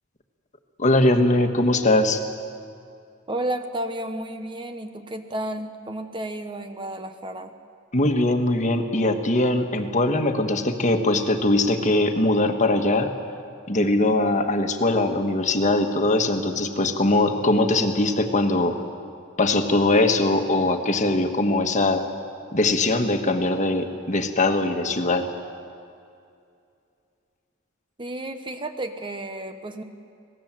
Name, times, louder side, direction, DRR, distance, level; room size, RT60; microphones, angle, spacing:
voice 1, 0.8-2.2 7.9-13.1 13.7-18.8 19.4-22.0 22.5-25.3, left 2 dB, 35° left, 5 dB, 1.6 m, -21 dB
voice 2, 3.3-7.5 28.0-29.8, right 1 dB, 25° right, 8 dB, 1.2 m, -32 dB
26.0 x 18.5 x 7.6 m, 2.4 s
head